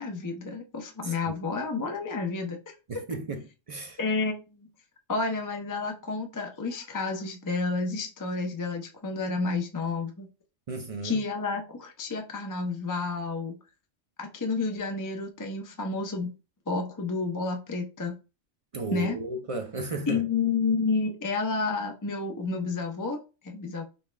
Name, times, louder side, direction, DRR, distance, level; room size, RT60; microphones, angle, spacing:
voice 1, 0.0-2.8 4.0-4.7 5.1-10.3 11.0-13.6 14.2-16.3 16.7-18.2 18.9-19.2 20.1-23.8, left 4 dB, 30° left, 0.4 m, -30 dB
voice 2, 1.0-1.4 2.9-4.0 10.7-11.2 18.7-20.2, right 3 dB, 50° right, 0.4 m, -34 dB
5.4 x 2.3 x 3.2 m
omnidirectional pair, 1.2 m